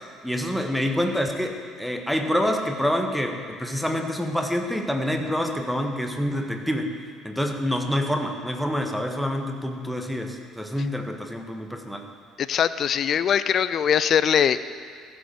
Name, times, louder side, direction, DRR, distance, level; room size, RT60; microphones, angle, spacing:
voice 1, 0.2-7.0 7.2-12.1, equal, ahead, 4 dB, 1.5 m, -27 dB
voice 2, 12.4-14.6, left 8 dB, 45° left, 14 dB, 0.4 m, -21 dB
14.5 x 6.8 x 7.7 m, 2.2 s
figure-of-eight pair, 55°, 0 cm